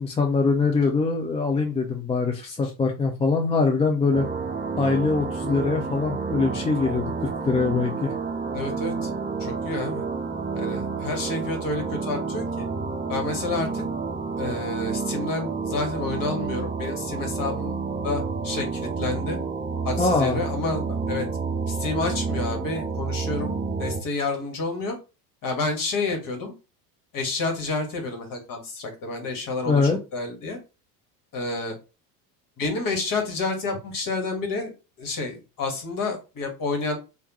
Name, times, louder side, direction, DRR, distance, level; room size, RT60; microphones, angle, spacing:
voice 1, 0.0-4.3 4.8-8.1 20.0-20.4 29.7-30.0, left 4 dB, 10° left, 2 dB, 0.6 m, -23 dB
sound 1, 4.1-24.0, right 4 dB, 20° right, 0.9 m, -30 dB
voice 2, 8.5-9.1 9.4-10.0 10.5-12.7 13.1-13.8 14.4-17.8 18.0-19.4 19.9-21.3 21.7-25.0 25.4-26.5 27.1-30.6 31.3-31.7 32.6-34.7 35.0-37.0, left 3 dB, 40° left, 3 dB, 1.8 m, -29 dB
3.5 x 2.8 x 3.0 m, 0.30 s
hypercardioid pair, 85°, 50 cm